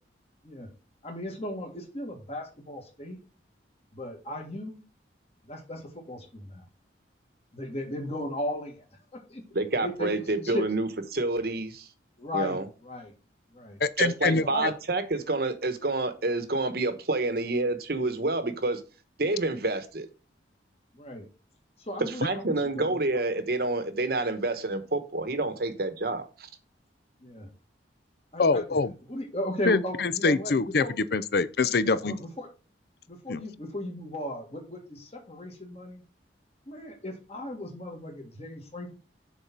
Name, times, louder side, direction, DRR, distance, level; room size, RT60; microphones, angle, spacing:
voice 1, 1.0-3.2 3.9-4.8 5.5-6.6 7.5-8.8 9.1-9.4 9.8-10.1 10.4-10.7 12.2-13.1 13.5-13.8 14.5-14.7 20.9-21.3 21.8-23.0 27.2-27.5 28.3-28.6 29.1-31.0 31.8-32.5 33.1-36.0 36.7-39.0, left 1 dB, 35° left, 1.9 m, -36 dB
voice 2, 9.5-11.9 12.3-12.7 14.0-18.8 19.2-20.1 22.0-26.5, right 2 dB, 55° right, 1.0 m, -28 dB
voice 3, 13.8-14.7 28.4-28.9 29.7-32.2 33.3-33.4, left 4 dB, 55° left, 0.5 m, -25 dB
6.8 x 4.1 x 6.0 m
head